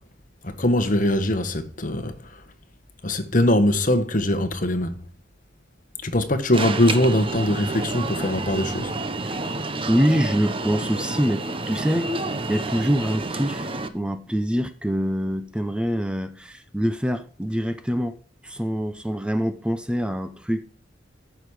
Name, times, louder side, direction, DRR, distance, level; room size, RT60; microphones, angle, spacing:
voice 1, 0.4-2.4 3.0-5.0 6.0-8.9, left 1 dB, 45° left, 1.3 m, -22 dB
Alarm, 6.5-13.9, right 2 dB, 30° right, 1.0 m, -29 dB
voice 2, 9.2-12.1 12.5-18.2 18.4-20.6, equal, 5° right, 0.6 m, -25 dB
14.0 x 6.2 x 4.8 m
head